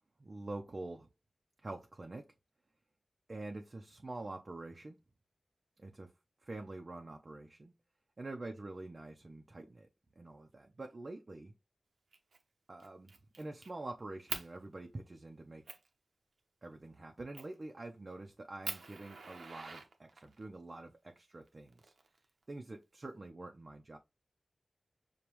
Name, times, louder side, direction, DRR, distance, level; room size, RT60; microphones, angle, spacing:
voice 1, 0.2-1.1 1.6-2.3 3.3-5.0 5.8-6.1 6.4-7.7 8.2-9.9 10.2-11.5 12.7-13.1 13.4-15.6 16.6-21.9 22.5-24.0, right 2 dB, 40° right, 0.6 m, -46 dB
Fire, 12.1-12.4 12.8-13.7 14.3-14.5 15.1-15.2 15.7-15.9 17.3-17.6 18.1-18.2 18.6-20.4 21.5-22.4, right 3 dB, 85° right, 0.8 m, -44 dB
6.8 x 2.3 x 3.0 m
wide cardioid pair, 100°, 0 cm